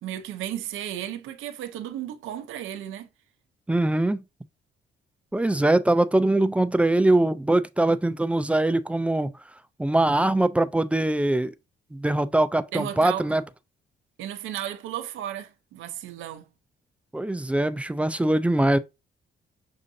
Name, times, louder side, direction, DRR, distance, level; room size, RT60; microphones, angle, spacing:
voice 1, 0.0-3.1 12.7-13.3 14.2-16.5, right 11 dB, 85° right, 0.7 m, -34 dB
voice 2, 3.7-4.2 5.3-9.3 9.8-11.5 11.9-13.4 17.1-18.8, right 1 dB, 5° right, 0.3 m, -22 dB
6.3 x 2.5 x 2.6 m
cardioid pair, 90°, 20 cm